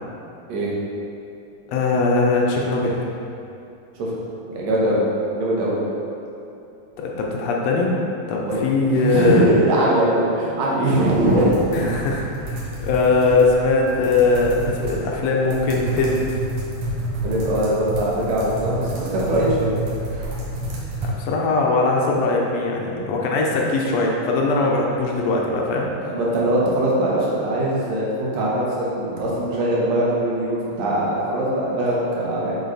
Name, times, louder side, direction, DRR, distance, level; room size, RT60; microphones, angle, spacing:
voice 1, 1.7-3.0 7.0-7.9 8.3-9.5 11.7-16.2 21.2-25.9, left 3 dB, 70° left, -1 dB, 1.9 m, -20 dB
voice 2, 4.5-5.0 5.3-5.8 8.4-8.6 8.9-11.5 17.2-19.7 26.0-32.6, right 1 dB, 70° right, -6 dB, 2.3 m, -21 dB
sound 1, 11.1-21.1, right 1 dB, 85° right, 2.8 m, -30 dB
7.1 x 5.0 x 4.0 m, 2.7 s
omnidirectional pair, 3.3 m